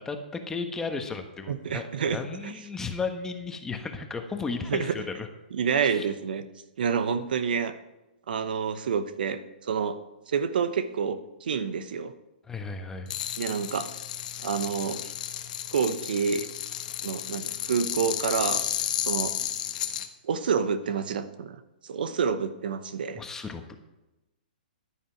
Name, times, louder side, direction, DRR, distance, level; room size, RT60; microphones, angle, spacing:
voice 1, 0.0-5.3 5.8-6.1 12.5-13.1 23.1-23.9, left 4 dB, 10° left, 5 dB, 1.2 m, -34 dB
voice 2, 1.5-2.5 4.7-5.0 5.5-6.4 6.8-7.7 8.3-10.0 10.3-12.1 13.4-13.9 14.4-15.1 15.7-16.5 17.0-18.7 19.1-19.3 20.2-23.2, right 6 dB, 70° right, 11 dB, 1.0 m, -28 dB
sound 1, 13.1-20.1, left 11 dB, 55° left, 1.2 m, -32 dB
14.5 x 10.0 x 4.6 m, 0.99 s
hypercardioid pair, 140°, 5 cm